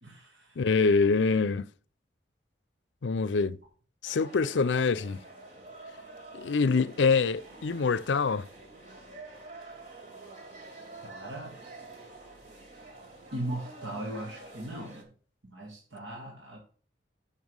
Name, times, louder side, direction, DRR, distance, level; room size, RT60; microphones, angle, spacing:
voice 1, 0.0-0.6 11.0-11.6 13.3-15.1 15.5-16.6, right 1 dB, 80° right, 2.2 m, -38 dB
voice 2, 0.6-1.7 3.0-3.6 4.0-5.2 6.3-8.5, left 4 dB, 80° left, 0.5 m, -25 dB
sound 1, 4.0-15.0, right 2 dB, 45° right, 2.6 m, -48 dB
7.2 x 5.5 x 6.3 m
head